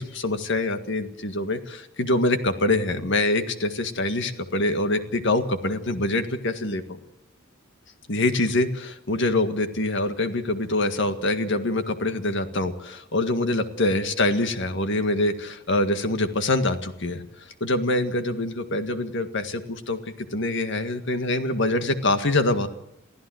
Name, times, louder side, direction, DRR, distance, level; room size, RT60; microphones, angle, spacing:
voice 1, 0.0-7.0 8.1-17.2 17.6-22.7, left 2 dB, 60° left, 9 dB, 1.8 m, -25 dB
23.5 x 15.0 x 7.9 m, 0.81 s
head